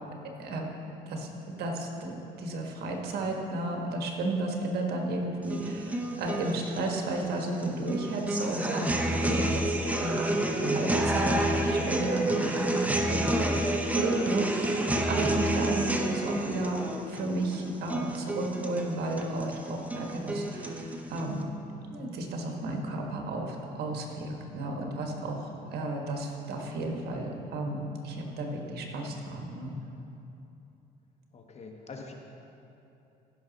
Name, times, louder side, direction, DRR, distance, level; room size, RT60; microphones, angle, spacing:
voice 1, 1.1-16.8 17.1-21.5 21.9-29.7, right 2 dB, 70° right, 1 dB, 1.4 m, -33 dB
sound 1, 5.4-21.4, right 1 dB, 10° right, 0.8 m, -30 dB
voice 2, 31.3-32.1, left 4 dB, 40° left, 2 dB, 1.2 m, -44 dB
16.0 x 5.9 x 4.0 m, 2.8 s
cardioid pair, 110°, 17 cm